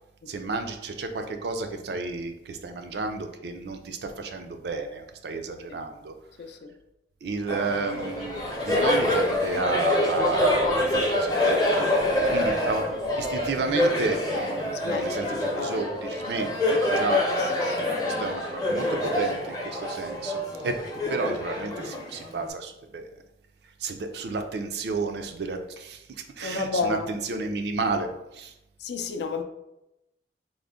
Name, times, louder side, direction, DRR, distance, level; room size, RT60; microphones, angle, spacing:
voice 1, 0.3-6.1 7.2-11.9 12.3-17.5 18.0-20.8 21.1-23.1 23.8-28.1 28.3-28.5, right 3 dB, 65° right, 0.4 m, -32 dB
voice 2, 6.4-6.7 12.2-12.3 14.8-15.8 17.4-17.9 26.4-27.1 28.8-29.4, left 4 dB, 65° left, 0.4 m, -32 dB
Laughter, 7.5-22.5, left 1 dB, 20° left, 0.6 m, -26 dB
3.7 x 2.0 x 3.5 m
head